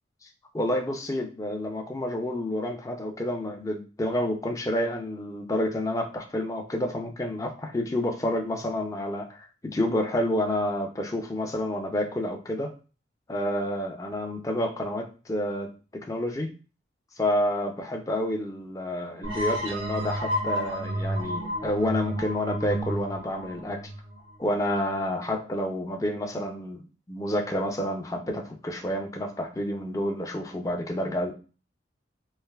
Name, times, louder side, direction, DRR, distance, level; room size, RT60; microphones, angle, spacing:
voice 1, 0.5-12.7 13.3-15.7 16.1-16.5 17.2-23.8 24.4-26.8 27.1-31.3, left 1 dB, 15° left, 2 dB, 0.4 m, -29 dB
sound 1, 19.2-24.7, equal, 85° right, 1.3 m, -31 dB
3.2 x 2.5 x 2.3 m, 0.35 s
head